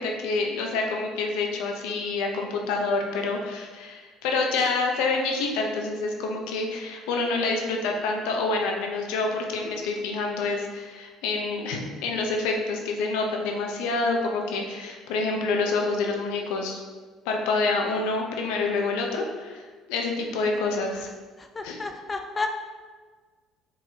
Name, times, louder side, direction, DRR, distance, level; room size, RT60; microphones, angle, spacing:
voice 1, 0.0-16.8 17.3-21.1 21.6-21.8, left 3 dB, 85° left, 2 dB, 0.6 m, -27 dB
voice 2, 21.4-22.5, left 3 dB, 25° left, 5 dB, 0.4 m, -31 dB
4.7 x 3.9 x 2.8 m, 1.4 s
cardioid pair, 100°, 0 cm